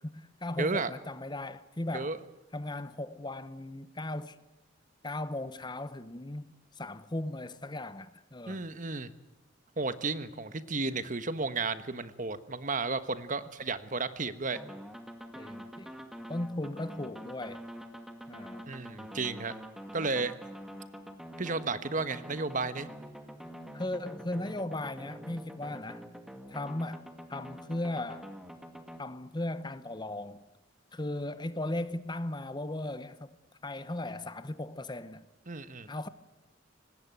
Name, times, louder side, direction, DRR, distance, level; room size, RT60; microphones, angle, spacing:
voice 1, 0.0-2.2 2.5-4.4 5.0-8.6 15.3-15.9 16.3-17.6 18.3-18.7 23.7-26.0 26.5-28.3 29.0-30.4 30.9-33.4 33.6-35.3 35.9-36.1, left 1 dB, 20° left, 0.9 m, -37 dB
voice 2, 0.6-0.9 1.9-2.2 8.5-9.1 9.8-14.6 18.7-19.5 19.9-20.3 21.4-22.9 35.5-35.9, right 3 dB, 40° right, 1.3 m, -33 dB
sound 1, 14.5-29.0, equal, ahead, 2.0 m, -46 dB
25.0 x 19.5 x 9.2 m
head